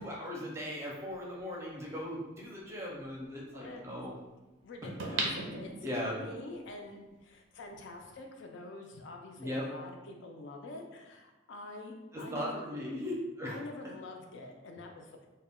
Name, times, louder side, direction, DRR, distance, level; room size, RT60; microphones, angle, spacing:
voice 1, 0.0-4.1 5.1-5.3 5.8-6.2 9.4-9.7 12.1-13.6, equal, 15° right, -3 dB, 0.5 m, -38 dB
sound 1, 1.4-1.5 5.0-6.3 6.8-6.9, right 3 dB, 80° right, 0.5 m, -35 dB
voice 2, 3.5-3.8 4.6-12.8 13.5-15.3, left 2 dB, 75° left, 2 dB, 0.4 m, -46 dB
2.1 x 2.1 x 3.5 m, 1.1 s
head